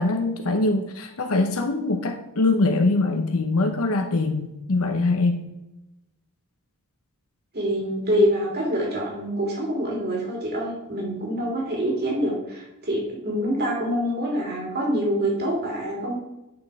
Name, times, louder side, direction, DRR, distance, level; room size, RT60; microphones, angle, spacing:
voice 1, 0.0-5.4, left 2 dB, 70° left, 5 dB, 0.8 m, -23 dB
voice 2, 7.5-16.2, equal, 45° right, -2 dB, 3.0 m, -25 dB
8.7 x 6.0 x 4.8 m, 0.95 s
head